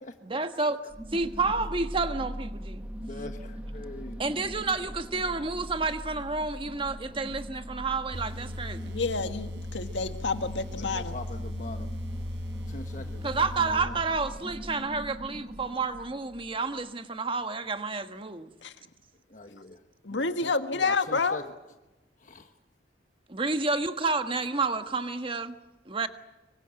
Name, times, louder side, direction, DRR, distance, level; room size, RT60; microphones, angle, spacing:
voice 1, 0.2-0.8 1.1-2.9 4.2-8.9 13.2-18.5 23.3-25.5 25.9-26.1, right 3 dB, 30° right, 8 dB, 1.4 m, -30 dB
sound 1, 0.9-16.8, equal, 5° right, 1.3 m, -41 dB
voice 2, 2.9-4.4 10.5-11.9 12.7-14.0 19.3-19.8 20.1-21.4 22.2-22.5, left 2 dB, 45° left, 6 dB, 1.3 m, -43 dB
sound 2, 8.1-13.8, left 1 dB, 80° right, 4.6 m, -38 dB
voice 3, 8.8-11.1 18.6-18.7 20.0-21.4, left 4 dB, 80° left, 8 dB, 1.7 m, -29 dB
26.0 x 24.0 x 7.7 m, 1.1 s
head